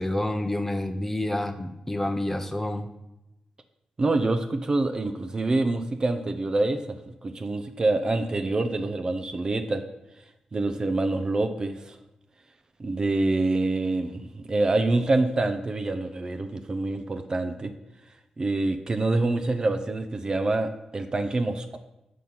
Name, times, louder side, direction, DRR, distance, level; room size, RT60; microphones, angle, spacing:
voice 1, 0.0-2.9, left 1 dB, 15° left, 6 dB, 0.7 m, -28 dB
voice 2, 4.0-7.0 7.2-9.8 10.5-12.0 12.8-17.7 18.4-21.8, right 2 dB, 40° right, 7 dB, 0.5 m, -26 dB
6.2 x 4.3 x 5.4 m, 0.92 s
cardioid pair, 75°, 2 cm